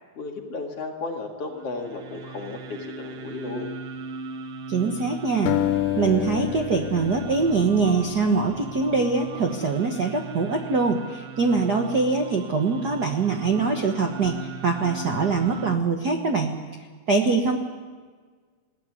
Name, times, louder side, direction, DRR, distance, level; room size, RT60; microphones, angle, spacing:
voice 1, 0.2-3.7, left 3 dB, 50° left, 2 dB, 2.9 m, -34 dB
sound 1, 1.4-15.7, right 5 dB, 55° right, 1.8 m, -39 dB
voice 2, 4.7-5.5 5.9-16.5 17.1-17.6, right 4 dB, 75° right, 4 dB, 0.9 m, -23 dB
sound 2, 5.5-8.7, left 13 dB, 85° left, 2.5 m, -29 dB
20.5 x 17.0 x 9.8 m, 1.5 s
omnidirectional pair, 4.0 m